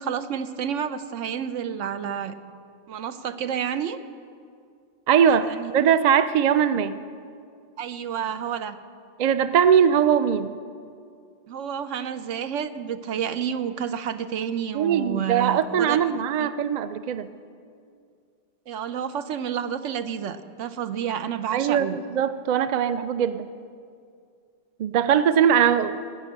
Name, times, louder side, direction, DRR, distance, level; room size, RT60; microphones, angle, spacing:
voice 1, 0.0-2.4 2.9-4.0 5.5-5.7 7.8-8.8 11.5-16.0 16.4-16.5 18.7-22.0, right 8 dB, 85° right, 11 dB, 1.0 m, -30 dB
voice 2, 5.1-7.0 9.2-10.5 14.7-17.3 21.5-23.5 24.8-26.0, right 8 dB, 55° right, 12 dB, 0.5 m, -21 dB
18.5 x 6.3 x 8.8 m, 2.3 s
omnidirectional pair, 1.2 m